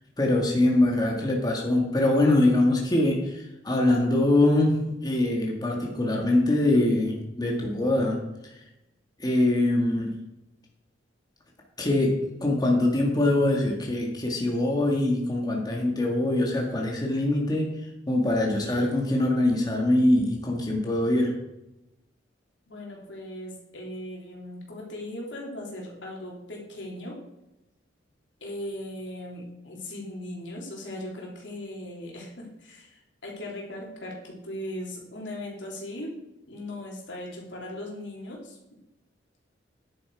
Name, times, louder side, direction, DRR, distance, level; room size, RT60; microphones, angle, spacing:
voice 1, 0.2-8.2 8.4-8.5 9.2-10.1 11.8-17.7 18.1-21.3, left 1 dB, 20° left, -1 dB, 1.9 m, -23 dB
voice 2, 22.7-27.2 28.4-36.1 36.5-38.6, left 1 dB, 85° left, -2 dB, 3.4 m, -38 dB
11.0 x 7.7 x 4.9 m, 0.91 s
head